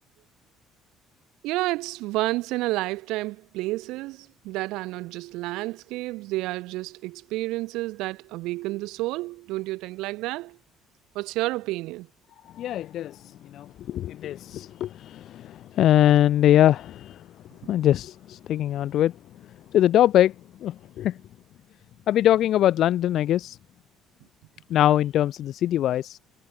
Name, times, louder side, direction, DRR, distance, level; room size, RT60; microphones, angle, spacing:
voice 1, 1.4-10.6 11.1-12.1 17.6-17.7, right 20 dB, 85° right, 1.1 m, -30 dB
voice 2, 12.6-13.2 13.5-17.2 17.7-19.1 19.7-20.3 20.6-21.2 22.1-23.6 24.7-26.2, left 12 dB, 50° left, 0.7 m, -22 dB
cardioid pair, 170°, 0 cm